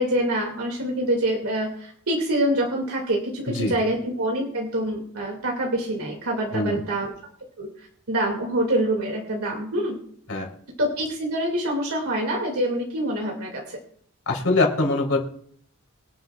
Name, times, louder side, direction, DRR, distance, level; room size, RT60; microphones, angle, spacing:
voice 1, 0.0-7.1 7.6-10.0 10.8-13.8, right 1 dB, 80° right, 0 dB, 2.4 m, -26 dB
voice 2, 14.3-15.2, left 2 dB, 70° left, 0 dB, 3.6 m, -22 dB
24.5 x 9.2 x 2.4 m, 0.63 s
head